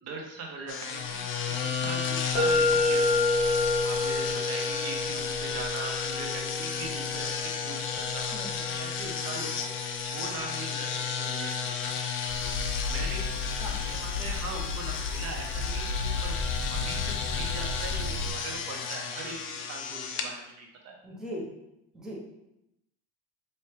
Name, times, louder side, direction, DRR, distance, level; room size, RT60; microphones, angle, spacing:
voice 1, 0.0-3.2 3.8-8.4 8.8-9.8 10.0-12.0 12.8-16.4 16.7-21.0, right 3 dB, 50° right, 1 dB, 0.8 m, -41 dB
sound 1, 0.7-20.3, left 6 dB, 40° left, 0.5 m, -33 dB
sound 2, 2.3-10.2, left 2 dB, 20° left, 1.0 m, -30 dB
voice 2, 8.3-8.7 9.3-9.5 13.6-13.8 21.0-21.5 21.9-22.2, equal, ahead, -4 dB, 0.8 m, -39 dB
sound 3, 12.3-18.3, left 4 dB, 55° left, 1.0 m, -33 dB
4.3 x 3.1 x 3.1 m, 0.84 s
cardioid pair, 135°, 33 cm